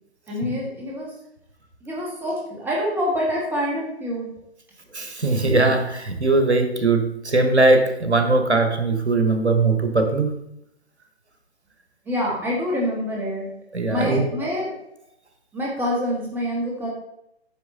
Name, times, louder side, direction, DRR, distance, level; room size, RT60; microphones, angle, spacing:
voice 1, 0.3-1.1 1.8-4.3 12.1-13.5 13.9-14.7 15.5-16.9, equal, 5° right, -3 dB, 1.8 m, -26 dB
voice 2, 4.9-10.3 13.7-14.3, right 3 dB, 85° right, 6 dB, 1.6 m, -20 dB
9.2 x 6.1 x 4.0 m, 0.78 s
figure-of-eight pair, 135°, 33 cm